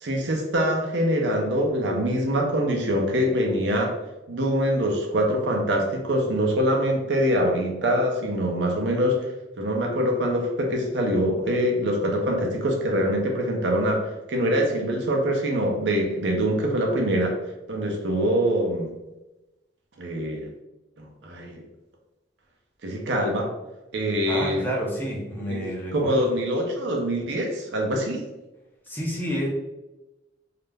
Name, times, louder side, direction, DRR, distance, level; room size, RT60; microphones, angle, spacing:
voice 1, 0.0-3.9 4.3-9.2 9.6-17.3 17.7-18.9 20.0-20.5 21.0-21.6 22.8-23.5 23.9-24.7 25.5-25.6 25.9-28.2, equal, 75° right, 1 dB, 0.6 m, -24 dB
voice 2, 24.3-26.2 28.9-29.5, equal, 10° left, -3 dB, 0.5 m, -29 dB
2.4 x 2.0 x 3.3 m, 1.0 s
head